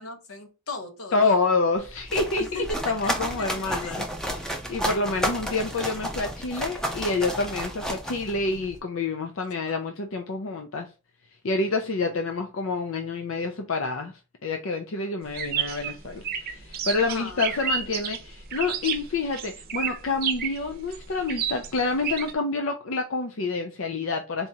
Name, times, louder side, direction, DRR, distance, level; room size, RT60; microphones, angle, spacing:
voice 1, 0.0-1.4 2.4-2.8 3.6-4.0 17.1-17.6, left 2 dB, 90° left, 1.1 m, -37 dB
voice 2, 1.1-4.0 4.4-10.9 11.4-24.5, left 3 dB, 65° left, 0.5 m, -28 dB
sound 1, 1.8-8.8, equal, 5° left, 0.6 m, -32 dB
sound 2, 15.3-22.3, right 8 dB, 45° right, 0.6 m, -31 dB
4.1 x 3.6 x 2.8 m
head